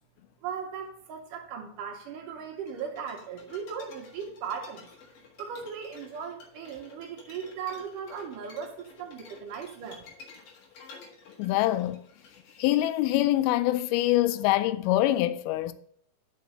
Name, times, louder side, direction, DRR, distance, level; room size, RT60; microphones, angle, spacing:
voice 1, 0.4-4.9 5.4-10.1, right 7 dB, 70° right, 2.2 m, -38 dB
sound 1, 2.7-13.2, left 4 dB, 60° left, 3.0 m, -51 dB
voice 2, 11.4-12.0 12.6-15.7, left 15 dB, 90° left, 2.5 m, -24 dB
6.6 x 5.2 x 6.5 m
omnidirectional pair, 4.3 m